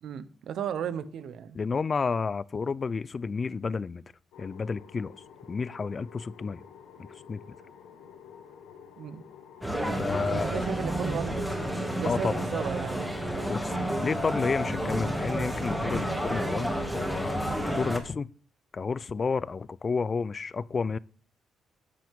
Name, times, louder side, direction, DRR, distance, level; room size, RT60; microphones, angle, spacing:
voice 1, 0.0-1.6 9.0-9.2 10.2-11.6 12.0-13.1, right 8 dB, 70° right, 0.9 m, -35 dB
voice 2, 1.5-4.0 4.4-5.1 5.5-6.6 7.0-7.4 10.0-10.7 12.0-12.4 13.5-18.3 18.7-21.0, left 5 dB, 35° left, 0.4 m, -31 dB
sound 1, 4.3-18.1, left 7 dB, 85° left, 1.4 m, -50 dB
sound 2, 9.6-18.0, right 1 dB, ahead, 2.2 m, -30 dB
11.5 x 7.5 x 3.7 m
cardioid pair, 90°, 0 cm